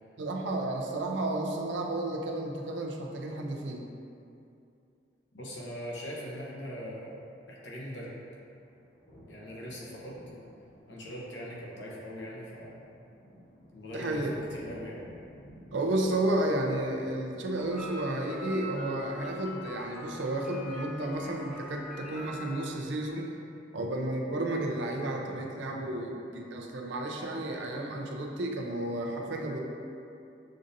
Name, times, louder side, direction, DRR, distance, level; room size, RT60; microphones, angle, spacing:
voice 1, 0.2-3.9 13.9-14.3 15.7-23.4 23.7-29.6, right 1 dB, 80° right, 1 dB, 0.5 m, -32 dB
voice 2, 5.3-7.2 7.5-8.2 9.3-10.2 10.9-12.8 13.7-15.0, equal, 75° left, -5 dB, 0.8 m, -41 dB
sound 1, 8.4-18.4, equal, 40° left, 0.9 m, -54 dB
sound 2, 17.5-22.8, left 1 dB, 5° right, 0.4 m, -44 dB
6.2 x 2.6 x 2.6 m, 2.6 s
head